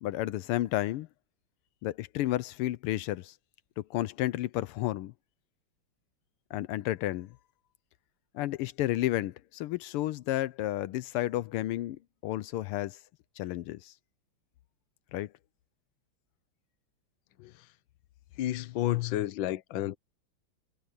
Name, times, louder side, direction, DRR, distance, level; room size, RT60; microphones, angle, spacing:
voice 1, 0.0-1.1 1.8-3.3 3.8-5.1 6.5-7.3 8.4-13.0 13.4-13.9 15.1-15.3, left 15 dB, 85° left, 1.6 m, -32 dB
voice 2, 18.4-20.0, left 14 dB, 65° left, 1.5 m, -31 dB
omnidirectional pair, 2.4 m